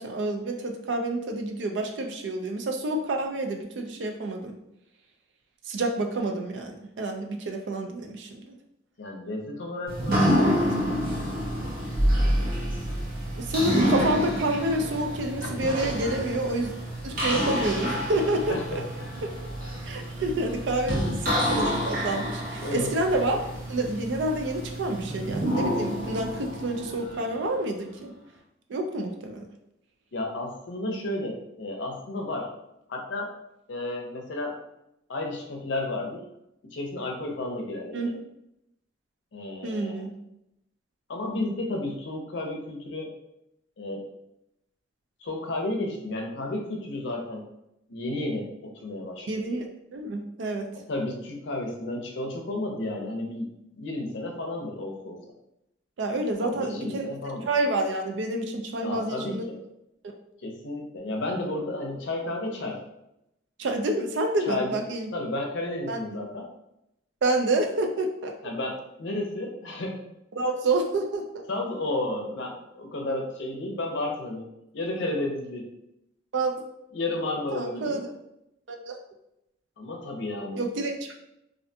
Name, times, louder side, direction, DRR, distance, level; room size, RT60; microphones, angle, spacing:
voice 1, 0.0-4.5 5.7-8.5 10.8-10.9 13.4-16.7 17.0-18.6 19.2-19.3 19.8-28.1 28.7-29.5 37.9-38.2 39.6-40.1 49.3-49.6 49.9-50.7 56.0-57.1 57.5-59.5 63.6-65.1 65.9-66.0 67.2-68.3 70.3-71.2 76.3-76.5 77.5-78.1 78.7-78.9 80.5-81.1, right 2 dB, 70° right, 3 dB, 0.4 m, -28 dB
voice 2, 9.0-10.2 15.4-15.9 17.8-17.9 18.5-19.1 22.6-23.0 30.1-32.5 32.9-33.3 33.7-34.5 35.1-36.2 36.7-38.1 39.3-40.0 41.1-43.1 43.8-44.0 45.2-47.4 47.9-49.4 50.7-55.2 56.4-57.5 58.8-59.6 60.4-62.8 64.5-64.7 65.1-66.5 68.4-70.0 71.5-74.5 74.7-75.7 76.9-78.0 79.8-80.7, left 2 dB, 70° left, 1 dB, 0.5 m, -32 dB
sound 1, 9.9-27.7, equal, 50° right, 0.8 m, -28 dB
2.5 x 2.2 x 2.6 m, 0.84 s
head